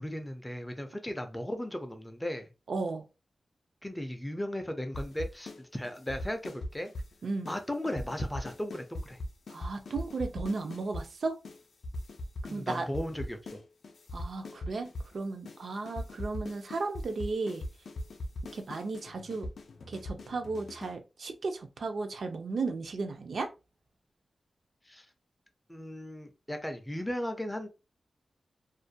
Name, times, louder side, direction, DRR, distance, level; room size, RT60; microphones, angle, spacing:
voice 1, 0.0-2.5 3.8-6.9 7.5-9.2 12.5-13.6 24.9-25.1 25.7-27.7, left 1 dB, 10° left, 0.4 m, -36 dB
voice 2, 2.7-3.0 7.2-7.5 9.5-11.4 12.5-12.9 14.1-17.6 18.5-19.5 19.9-23.5, right 3 dB, 65° right, 0.4 m, -35 dB
sound 1, 4.9-5.6 5.8-7.1 7.4-7.6 7.9-11.1 11.4-11.6 11.8-13.6 13.8-15.1 15.4-15.6 15.9-20.9, left 1 dB, 75° left, 0.4 m, -39 dB
2.4 x 2.1 x 2.6 m
wide cardioid pair, 150°, 0 cm